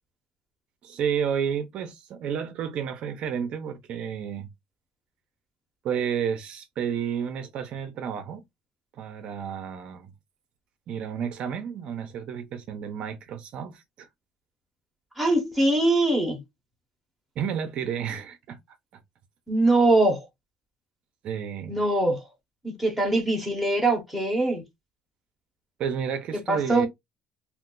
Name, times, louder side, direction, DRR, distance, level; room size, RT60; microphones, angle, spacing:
voice 1, 0.8-4.5 5.8-8.4 9.0-10.1 10.9-14.1 17.4-18.8 21.2-21.8 25.8-26.9, right 8 dB, 45° right, 0.5 m, -31 dB
voice 2, 15.2-16.4 19.5-20.2 21.7-22.2 22.6-24.6 26.5-26.9, right 2 dB, ahead, 0.8 m, -22 dB
2.4 x 2.3 x 3.7 m
cardioid pair, 170°, 3 cm